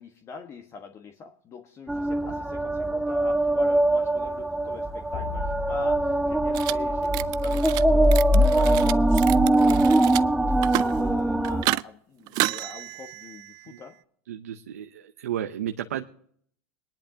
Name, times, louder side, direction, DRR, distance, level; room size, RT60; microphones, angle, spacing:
voice 1, 0.0-13.9, left 5 dB, 35° left, 5 dB, 1.3 m, -43 dB
sound 1, 1.9-11.6, right 1 dB, 5° right, 0.6 m, -22 dB
sound 2, 5.1-7.6, left 11 dB, 65° left, 2.1 m, -41 dB
sound 3, 6.5-6.7 7.0-7.8 8.1-10.2 10.5-11.0 11.4-11.8 12.3-13.7, right 20 dB, 55° right, 0.4 m, -30 dB
voice 2, 14.3-16.0, right 10 dB, 90° right, 6 dB, 0.7 m, -33 dB
21.5 x 10.5 x 2.8 m, 0.62 s
hypercardioid pair, 105°, 8 cm